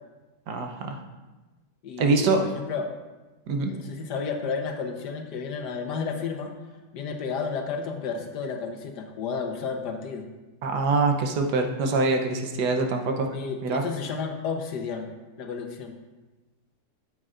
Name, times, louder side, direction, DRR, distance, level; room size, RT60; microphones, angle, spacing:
voice 1, 0.5-1.0 2.0-2.4 3.5-3.7 10.6-13.3 13.6-13.8, right 3 dB, 80° right, 4 dB, 1.5 m, -24 dB
voice 2, 1.8-2.9 3.7-6.5 6.9-10.2 13.3-15.1 15.4-16.0, left 5 dB, 80° left, 4 dB, 1.5 m, -32 dB
13.5 x 7.7 x 2.5 m, 1.2 s
omnidirectional pair, 1.8 m